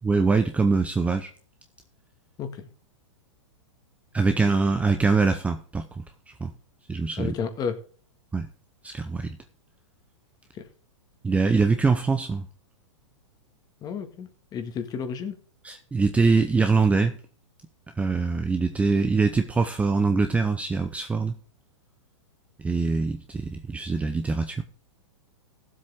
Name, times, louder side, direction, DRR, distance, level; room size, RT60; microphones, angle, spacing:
voice 1, 0.0-1.3 4.1-6.0 6.4-6.5 6.9-7.3 8.3-8.5 8.8-9.4 11.2-12.5 15.6-17.2 18.0-21.3 22.6-24.6, right 4 dB, 10° right, 0.7 m, -23 dB
voice 2, 7.2-7.8 10.5-10.7 13.8-15.3, left 6 dB, 25° left, 1.8 m, -32 dB
16.0 x 7.7 x 3.7 m
hypercardioid pair, 140°, 16 cm